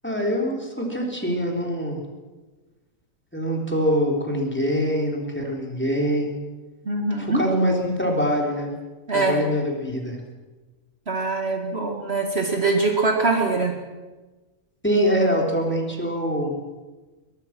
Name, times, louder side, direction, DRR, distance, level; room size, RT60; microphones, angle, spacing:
voice 1, 0.0-2.0 3.3-6.3 7.2-8.7 9.1-10.2 14.8-16.5, equal, 10° left, 0 dB, 3.8 m, -24 dB
voice 2, 6.9-7.4 9.1-9.5 11.1-13.7, right 3 dB, 50° right, 2 dB, 2.2 m, -23 dB
22.0 x 21.5 x 6.1 m, 1.2 s
omnidirectional pair, 1.4 m